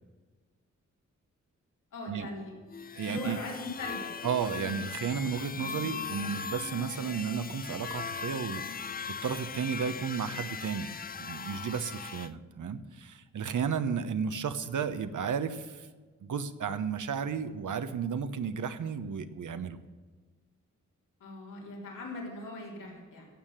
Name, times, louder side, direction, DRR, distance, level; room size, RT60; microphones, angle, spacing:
voice 1, 1.9-2.5 3.1-4.1 21.2-23.3, left 2 dB, 90° left, -3 dB, 3.9 m, -40 dB
sound 1, 2.7-12.3, left 6 dB, 30° left, 0.5 m, -39 dB
voice 2, 2.9-3.4 4.2-9.0 9.2-10.9 11.2-15.9 16.2-19.8, right 6 dB, 75° right, 10 dB, 0.9 m, -33 dB
16.0 x 7.5 x 7.5 m, 1.4 s
cardioid pair, 65°, 31 cm